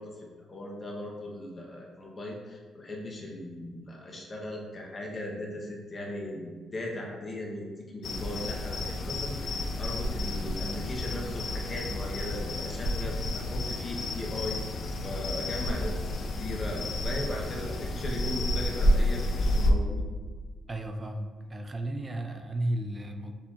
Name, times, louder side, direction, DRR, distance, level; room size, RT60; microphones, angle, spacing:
voice 1, 0.0-14.6 15.0-20.0, left 1 dB, 35° left, -1 dB, 0.8 m, -38 dB
sound 1, 8.0-19.7, left 1 dB, 55° left, 0.5 m, -30 dB
voice 2, 20.7-23.3, right 1 dB, 25° right, 5 dB, 0.4 m, -34 dB
6.5 x 2.8 x 2.4 m, 1.5 s
cardioid pair, 90°, 0 cm